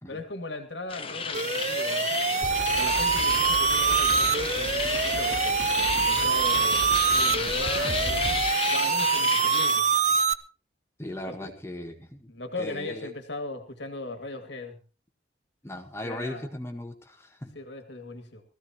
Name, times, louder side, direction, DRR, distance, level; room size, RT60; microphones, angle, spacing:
voice 1, 0.1-5.6 5.9-9.9 11.3-11.5 12.3-14.8 16.0-16.5 17.5-18.4, left 2 dB, 70° left, 7 dB, 2.2 m, -38 dB
sound 1, 0.9-9.8, left 5 dB, 30° left, 1.1 m, -31 dB
sound 2, 1.3-10.3, right 5 dB, 40° right, 0.6 m, -25 dB
sound 3, 2.4-8.4, right 2 dB, 70° right, 3.2 m, -36 dB
voice 2, 11.0-13.1 15.6-17.5, left 1 dB, 15° left, 5 dB, 1.5 m, -38 dB
20.5 x 15.0 x 2.9 m, 0.34 s
head